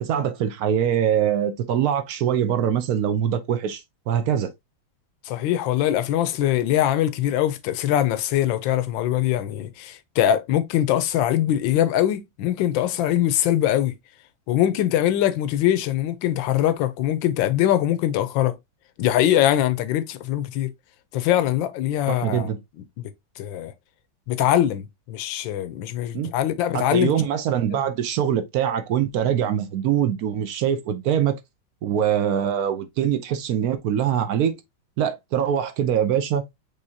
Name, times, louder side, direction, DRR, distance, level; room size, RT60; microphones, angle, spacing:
voice 1, 0.0-4.5 22.1-22.6 26.1-26.3 26.7-31.3 31.8-34.5 35.0-36.4, right 9 dB, 65° right, 1.0 m, -23 dB
voice 2, 5.3-13.9 14.5-18.6 19.0-20.7 21.1-22.5 23.0-23.1 23.4-23.7 24.3-27.1, left 12 dB, 80° left, 1.4 m, -22 dB
5.5 x 3.2 x 2.7 m
omnidirectional pair, 2.1 m